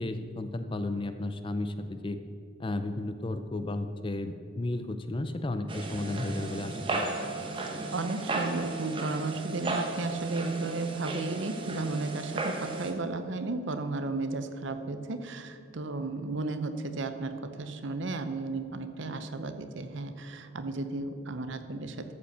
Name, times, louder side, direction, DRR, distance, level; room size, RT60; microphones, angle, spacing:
voice 1, 0.0-2.2 2.6-7.0, left 2 dB, 25° left, 9 dB, 0.4 m, -33 dB
sound 1, 5.7-12.9, right 2 dB, 25° right, 0.9 m, -35 dB
voice 2, 7.9-22.1, right 3 dB, 60° right, 9 dB, 0.7 m, -34 dB
13.5 x 5.2 x 6.7 m, 2.4 s
head